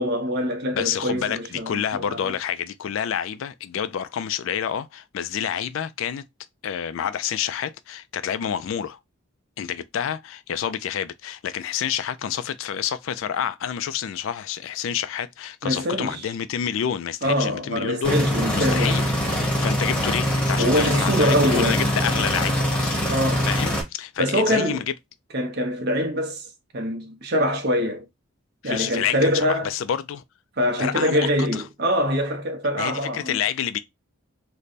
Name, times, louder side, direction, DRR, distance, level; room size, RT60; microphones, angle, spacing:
voice 1, 0.0-2.3 15.6-16.3 17.2-19.0 20.6-21.8 23.1-23.5 24.2-24.8 25.3-26.5 26.7-28.1 28.6-29.7 30.6-33.4, equal, 50° right, 0.8 m, -24 dB
voice 2, 0.7-6.2 6.6-9.0 9.6-18.2 18.5-19.1 19.3-23.0 23.4-24.8 28.6-30.2 30.8-31.6 32.8-33.8, left 9 dB, 65° left, 0.3 m, -28 dB
sound 1, 18.0-23.8, equal, 5° left, 0.9 m, -23 dB
3.3 x 2.1 x 4.0 m
head